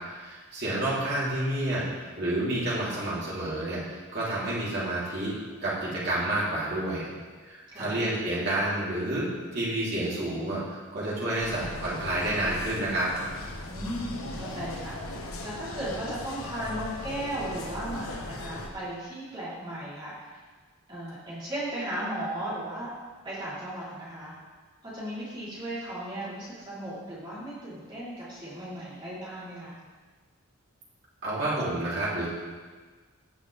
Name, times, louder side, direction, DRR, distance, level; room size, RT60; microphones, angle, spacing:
voice 1, 0.1-1.8 2.2-7.1 7.5-9.3 9.5-13.1 31.2-32.3, right 1 dB, 45° right, -8 dB, 3.2 m, -29 dB
voice 2, 7.7-8.1 13.7-20.3 20.9-22.9 23.2-24.3 24.8-29.8, right 1 dB, 20° right, -10 dB, 3.6 m, -36 dB
sound 1, 11.4-18.7, left 2 dB, 70° left, 1.2 m, -38 dB
16.0 x 6.5 x 3.4 m, 1.4 s
head